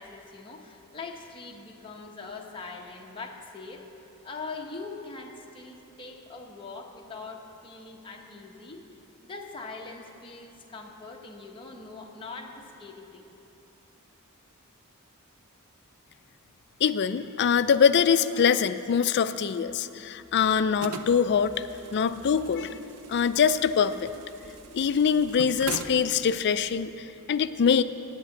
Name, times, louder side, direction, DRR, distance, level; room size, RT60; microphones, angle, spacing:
voice 1, 0.0-3.8 4.2-8.8 9.2-13.2, left 3 dB, 25° left, 0 dB, 1.0 m, -42 dB
voice 2, 16.8-21.5 21.9-22.8 23.1-24.1 24.7-27.8, left 7 dB, 50° left, 13 dB, 0.4 m, -23 dB
sound 1, 20.8-26.8, right 5 dB, 85° right, 0.6 m, -42 dB
8.3 x 8.3 x 8.9 m, 3.0 s
head